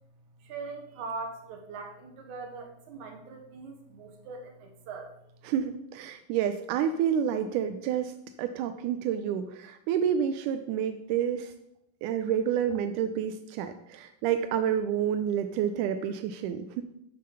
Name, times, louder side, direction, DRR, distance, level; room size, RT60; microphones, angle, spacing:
voice 1, 0.4-5.1, right 4 dB, 65° right, 3 dB, 2.6 m, -41 dB
voice 2, 5.4-11.5 12.0-16.8, right 9 dB, 80° right, 8 dB, 1.9 m, -29 dB
7.7 x 6.6 x 6.6 m, 0.80 s
omnidirectional pair, 4.0 m